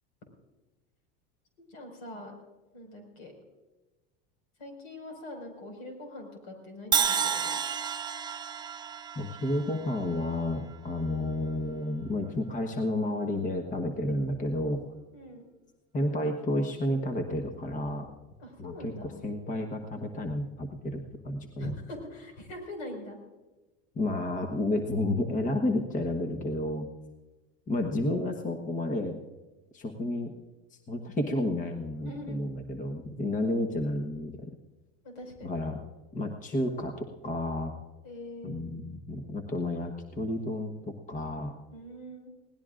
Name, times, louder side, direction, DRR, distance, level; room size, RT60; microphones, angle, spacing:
voice 1, 1.7-2.4 2.7-3.3 4.6-7.6 15.1-15.5 18.4-19.1 21.6-23.2 32.0-32.4 35.0-35.6 38.0-38.6 41.7-42.3, left 1 dB, 75° left, 3 dB, 5.6 m, -43 dB
Crash cymbal, 6.9-11.0, right 7 dB, 15° right, 0.4 m, -31 dB
voice 2, 9.1-14.8 15.9-18.1 18.6-21.8 23.9-26.9 27.7-29.2 29.7-30.3 30.9-34.5 35.4-35.8 36.1-37.7 38.4-41.6, left 1 dB, 25° left, 4 dB, 1.3 m, -31 dB
21.5 x 18.0 x 2.6 m, 1.2 s
supercardioid pair, 120°, 32 cm